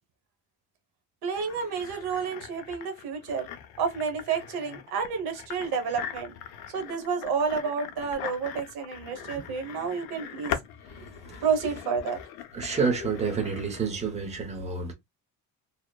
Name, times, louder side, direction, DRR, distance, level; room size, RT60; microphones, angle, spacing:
voice 1, 1.2-3.5 3.8-6.3 6.7-10.5 11.4-12.2, right 6 dB, 80° right, 1.0 m, -30 dB
sound 1, 1.3-13.8, left 9 dB, 75° left, 0.6 m, -41 dB
voice 2, 12.5-14.9, right 5 dB, 20° right, 0.8 m, -29 dB
2.8 x 2.0 x 2.2 m
cardioid pair, 140°, 37 cm